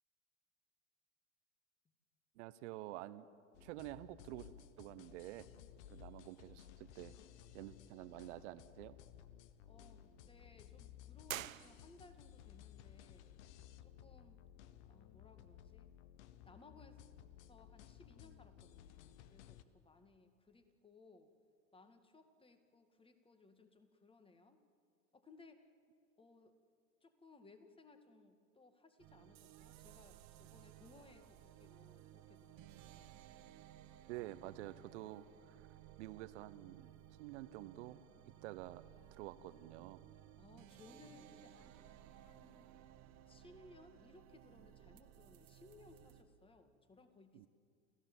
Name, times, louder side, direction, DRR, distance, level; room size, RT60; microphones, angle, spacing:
voice 1, 2.4-3.3 3.6-5.5 5.9-7.1 7.5-9.0 34.1-35.6 36.0-38.0 38.4-38.8 39.1-40.0 47.3-47.5, right 15 dB, 60° right, 15 dB, 1.1 m, -49 dB
sound 1, 3.5-19.6, left 10 dB, 60° left, 1.2 m, -58 dB
voice 2, 9.6-13.4 13.8-14.4 14.9-15.9 16.5-17.1 17.4-21.3 21.7-24.6 25.1-25.7 26.2-26.5 27.0-33.2 38.9-39.9 40.4-42.8 43.3-47.5, left 3 dB, 15° left, 8 dB, 2.1 m, -63 dB
sound 2, 11.2-12.3, right 12 dB, 85° right, 0.6 m, -46 dB
sound 3, 29.0-46.2, right 12 dB, 45° right, 1.8 m, -59 dB
30.0 x 15.5 x 7.5 m, 2.3 s
hypercardioid pair, 85°, 39 cm